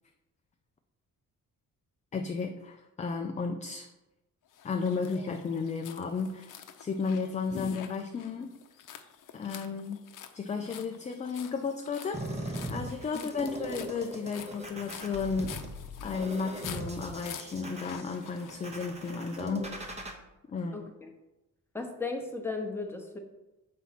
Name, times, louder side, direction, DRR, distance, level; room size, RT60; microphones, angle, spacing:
voice 1, 2.1-3.9 4.6-6.5 6.8-8.5 9.3-10.0 10.3-15.6 16.0-19.9 20.5-20.9, left 4 dB, 20° left, 4 dB, 0.3 m, -33 dB
sound 1, 4.5-19.3, left 8 dB, 65° left, 0.7 m, -47 dB
sound 2, 12.1-20.1, right 1 dB, 20° right, 0.8 m, -40 dB
voice 2, 20.7-21.1 21.7-23.2, left 3 dB, 5° left, 2 dB, 0.9 m, -36 dB
7.3 x 4.2 x 5.8 m, 0.99 s
wide cardioid pair, 155°, 34 cm